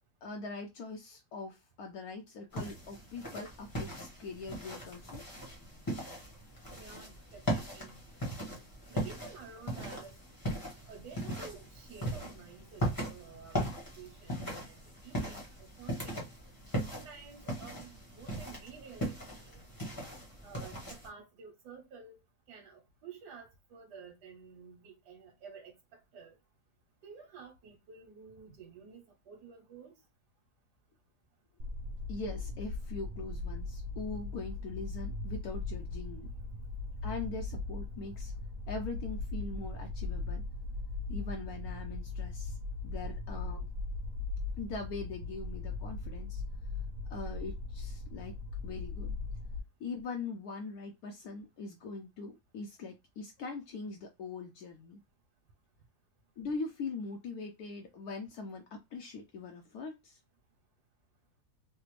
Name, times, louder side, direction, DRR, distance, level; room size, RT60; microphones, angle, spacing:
voice 1, 0.2-5.2 32.1-36.3 37.0-38.3 38.7-40.4 41.1-42.6 42.8-43.7 44.6-46.4 47.1-48.4 48.6-49.1 49.8-55.0 56.4-60.2, left 4 dB, 75° left, 1.0 m, -42 dB
sound 1, 2.5-21.1, equal, 15° left, 0.8 m, -39 dB
voice 2, 6.7-8.0 8.9-10.2 10.8-16.3 16.9-19.7 20.4-22.2 22.5-26.4 27.0-30.0, right 5 dB, 90° right, 1.4 m, -51 dB
sound 2, 31.6-49.6, left 3 dB, 65° right, 1.0 m, -39 dB
3.3 x 2.1 x 3.0 m
omnidirectional pair, 1.7 m